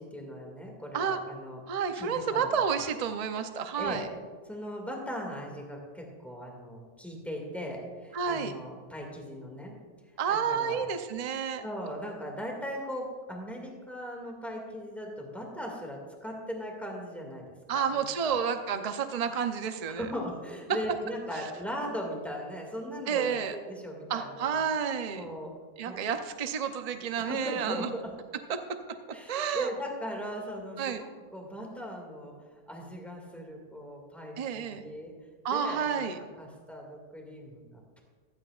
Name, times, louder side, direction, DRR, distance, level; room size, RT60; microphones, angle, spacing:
voice 1, 0.0-2.5 3.8-4.1 4.5-9.7 10.5-10.8 11.6-18.4 19.9-24.6 25.1-25.5 25.8-26.0 27.2-28.1 29.1-32.3 32.7-35.1 35.5-36.1 36.4-38.0, equal, ahead, 0 dB, 2.0 m, -39 dB
voice 2, 1.7-4.1 8.1-8.5 10.2-11.6 17.7-20.1 21.3-21.4 23.1-23.6 24.1-25.3 25.8-27.9 28.5-28.6 29.3-29.7 30.8-31.0 34.4-34.8 35.4-36.2, right 7 dB, 50° right, 7 dB, 0.4 m, -30 dB
15.5 x 12.5 x 2.4 m, 1.5 s
omnidirectional pair, 1.6 m